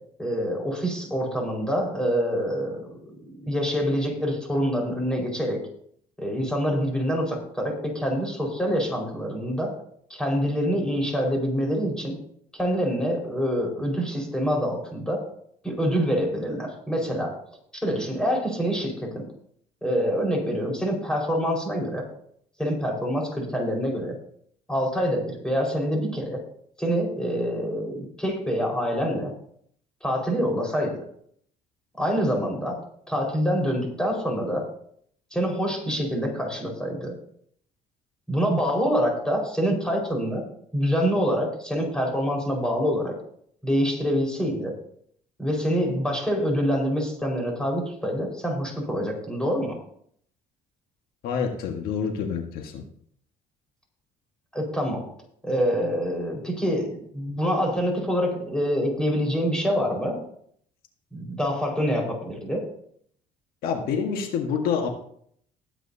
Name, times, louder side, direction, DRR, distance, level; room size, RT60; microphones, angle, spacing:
voice 1, 0.2-5.6 6.2-9.7 10.1-12.2 12.5-15.2 15.6-17.3 17.8-19.2 19.8-22.0 22.6-24.2 24.7-26.4 26.8-29.3 30.0-31.0 32.0-34.6 35.3-37.1 38.3-40.4 40.7-43.1 43.6-44.7 45.4-49.8 54.5-55.0 55.4-60.2 61.1-62.6, equal, 5° left, -1 dB, 5.0 m, -26 dB
voice 2, 51.2-52.8 63.6-64.9, left 6 dB, 80° left, 3 dB, 1.7 m, -27 dB
20.0 x 9.1 x 2.8 m, 0.64 s
cardioid pair, 120°, 15 cm